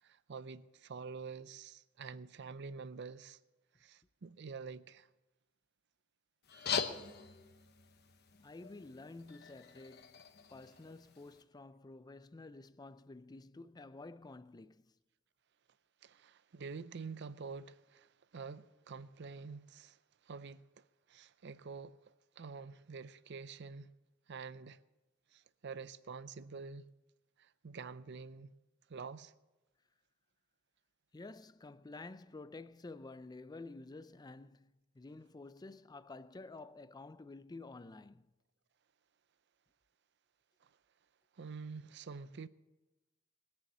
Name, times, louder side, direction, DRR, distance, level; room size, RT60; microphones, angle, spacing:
voice 1, 0.0-3.4 3.8-5.1 16.0-20.0 20.3-23.9 24.3-24.8 25.3-26.8 27.4-28.5 28.9-29.3 40.6-40.7 41.4-42.5, right 5 dB, 60° right, 0.5 m, -47 dB
sound 1, 6.4-11.4, left 6 dB, 55° left, 1.0 m, -42 dB
voice 2, 8.4-10.2 10.5-14.9 31.1-38.3, left 3 dB, 20° left, 0.4 m, -51 dB
20.0 x 7.0 x 8.0 m
head